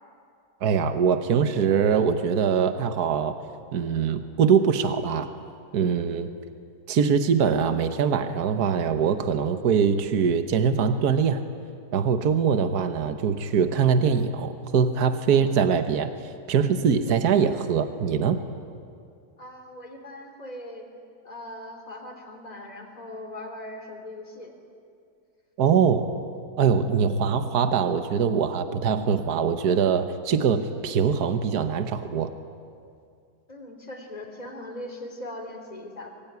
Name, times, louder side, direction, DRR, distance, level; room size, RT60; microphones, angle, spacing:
voice 1, 0.6-3.3 3.7-5.3 5.7-6.3 6.9-11.4 11.9-16.1 16.5-18.4 25.6-26.1 26.6-32.3, right 6 dB, 70° right, 9 dB, 1.6 m, -23 dB
voice 2, 19.4-20.9 21.2-24.5 33.5-36.1, left 1 dB, 25° left, 2 dB, 3.5 m, -40 dB
25.5 x 23.0 x 9.6 m, 2.4 s
omnidirectional pair, 1.7 m